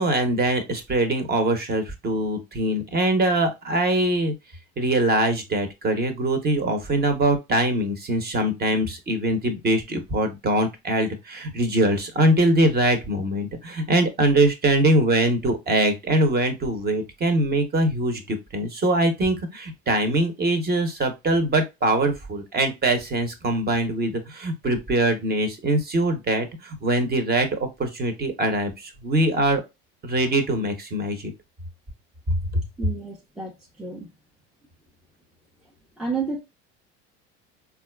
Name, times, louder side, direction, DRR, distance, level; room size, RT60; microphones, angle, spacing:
voice 1, 0.0-4.3 4.8-29.6 30.0-31.3 32.5-32.6, right 1 dB, 30° right, 0.8 m, -23 dB
voice 2, 32.8-34.1 36.0-36.4, right 4 dB, ahead, 0.4 m, -31 dB
4.0 x 2.4 x 2.2 m
supercardioid pair, 90°, 34 cm